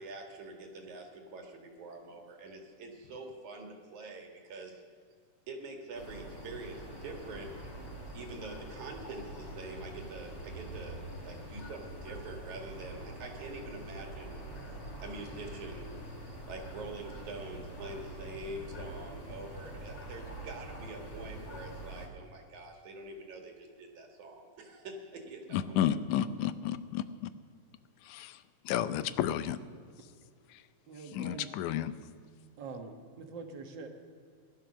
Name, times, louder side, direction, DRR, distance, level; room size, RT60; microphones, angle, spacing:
voice 1, 0.0-4.8 5.5-7.5 8.1-14.4 14.7-14.8 15.0-15.9 16.3-25.8, right 2 dB, 70° right, 2 dB, 3.2 m, -45 dB
sound 1, 5.9-22.1, right 1 dB, 20° left, 3.5 m, -45 dB
voice 2, 25.5-27.3 28.1-28.4 28.7-29.6 31.1-31.9, left 10 dB, 85° left, 13 dB, 2.2 m, -31 dB
voice 3, 30.9-31.5 32.6-34.0, right 4 dB, 50° right, 4 dB, 1.6 m, -44 dB
17.5 x 12.0 x 6.3 m, 2.1 s
omnidirectional pair, 3.5 m